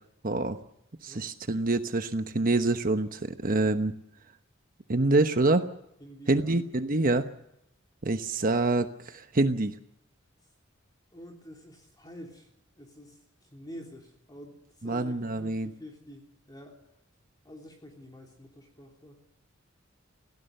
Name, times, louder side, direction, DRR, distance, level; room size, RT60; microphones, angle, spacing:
voice 1, 0.2-0.6 1.0-3.9 4.9-5.7 6.3-7.3 8.0-9.7 14.8-15.7, right 2 dB, 45° right, 8 dB, 1.1 m, -26 dB
voice 2, 6.0-6.6 6.9-7.1 11.1-12.5 12.7-16.2 16.5-16.8 17.4-19.2, equal, 20° left, 1 dB, 3.2 m, -48 dB
26.5 x 17.5 x 6.7 m, 0.81 s
head